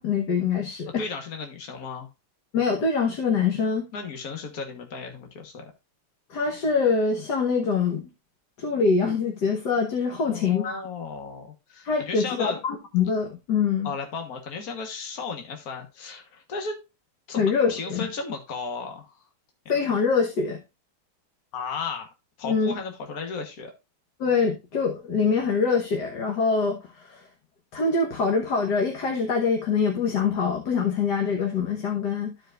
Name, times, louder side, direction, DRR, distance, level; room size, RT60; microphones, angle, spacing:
voice 1, 0.0-1.0 2.5-3.9 6.3-8.1 8.6-10.8 11.8-13.9 17.4-18.1 19.7-20.6 22.4-22.8 24.2-27.2 27.7-32.3, left 5 dB, 80° left, 1.9 m, -24 dB
voice 2, 1.0-2.1 3.9-5.7 10.3-12.6 13.8-16.8 17.3-19.2 21.5-22.1 22.4-23.7, left 4 dB, 60° left, 1.8 m, -35 dB
14.0 x 5.1 x 2.5 m
omnidirectional pair, 1.8 m